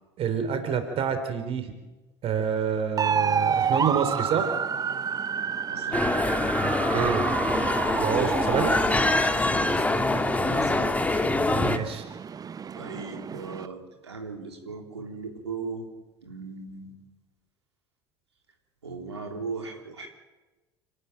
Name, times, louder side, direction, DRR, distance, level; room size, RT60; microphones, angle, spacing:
voice 1, 0.2-1.7 2.2-4.5 6.9-7.3 8.0-8.8 11.5-12.0, right 7 dB, 45° right, 8 dB, 3.7 m, -27 dB
sound 1, 3.0-13.7, right 7 dB, 25° right, 0.8 m, -30 dB
voice 2, 5.7-6.0 10.4-11.3 12.7-15.9 16.2-16.9 18.8-20.1, right 4 dB, 85° right, 2 dB, 3.5 m, -38 dB
sound 2, 5.9-11.8, left 2 dB, 10° left, 2.2 m, -24 dB
30.0 x 12.5 x 9.1 m, 1.2 s
figure-of-eight pair, 65°, 14 cm